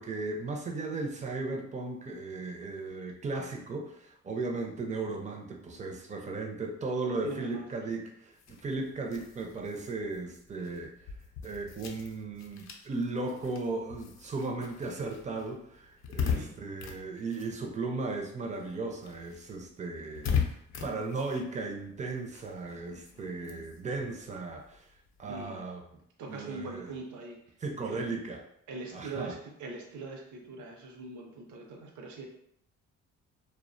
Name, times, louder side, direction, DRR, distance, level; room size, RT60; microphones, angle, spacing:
voice 1, 0.0-10.9 11.4-20.3 20.8-24.8 25.2-25.8 26.3-27.0 27.6-28.4 28.9-29.4, right 3 dB, 25° right, 2 dB, 0.4 m, -36 dB
voice 2, 7.2-7.7 16.2-16.5 25.2-25.7 26.2-27.4 27.8-28.0 28.7-32.3, right 3 dB, 75° right, 2 dB, 0.6 m, -42 dB
sound 1, 8.3-18.2 18.5-25.5, left 7 dB, 60° left, 0.5 m, -39 dB
2.3 x 2.1 x 2.5 m, 0.74 s
cardioid pair, 90°, 30 cm